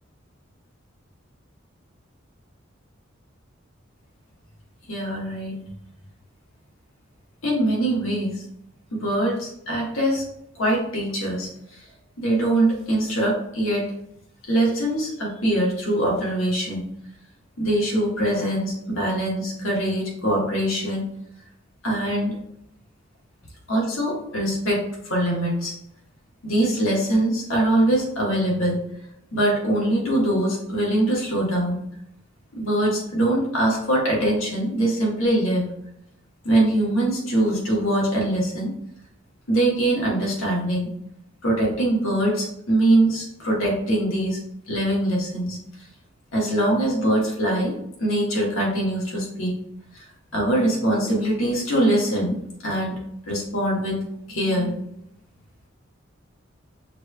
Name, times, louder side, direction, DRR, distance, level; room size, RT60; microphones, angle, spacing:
voice 1, 4.9-5.6 7.4-8.3 8.9-10.2 10.5-11.5 12.2-13.9 14.5-16.8 17.6-21.1 21.8-22.4 23.7-25.7 26.4-28.8 29.3-31.8 32.6-35.7 36.4-38.7 39.5-40.9 41.4-44.4 44.7-45.6 46.3-47.7 48.0-49.5 50.3-52.4 52.6-53.0 53.3-54.0 54.3-54.8, right 1 dB, 90° left, -3 dB, 1.6 m, -23 dB
5.8 x 3.3 x 2.3 m, 0.75 s
head